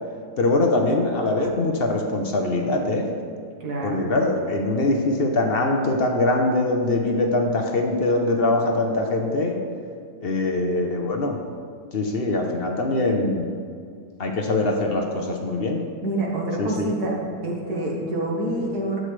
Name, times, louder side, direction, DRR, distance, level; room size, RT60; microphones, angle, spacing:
voice 1, 0.4-3.1 3.8-9.6 10.2-11.4 11.9-13.5 14.2-15.8 16.6-16.9, left 2 dB, 50° left, 2 dB, 0.7 m, -23 dB
voice 2, 3.6-4.1 16.0-17.2 17.4-19.0, right 1 dB, 65° right, -3 dB, 1.8 m, -27 dB
11.5 x 7.9 x 3.3 m, 2.2 s
omnidirectional pair, 1.9 m